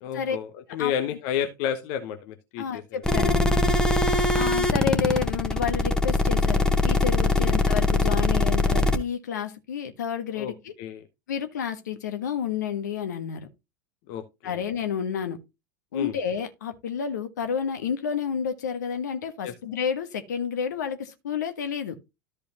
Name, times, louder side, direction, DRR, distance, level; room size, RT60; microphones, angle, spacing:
voice 1, 0.0-3.0 7.4-7.6 10.3-11.0 14.1-14.6 15.9-16.1 19.4-19.5, left 9 dB, 50° left, 1.0 m, -31 dB
voice 2, 2.6-3.8 4.3-10.7 11.3-13.5 14.4-15.4 15.9-22.0, left 7 dB, 65° left, 1.4 m, -30 dB
sound 1, 3.0-9.0, left 2 dB, 5° left, 1.2 m, -22 dB
13.5 x 5.0 x 2.9 m
figure-of-eight pair, 80°, 10 cm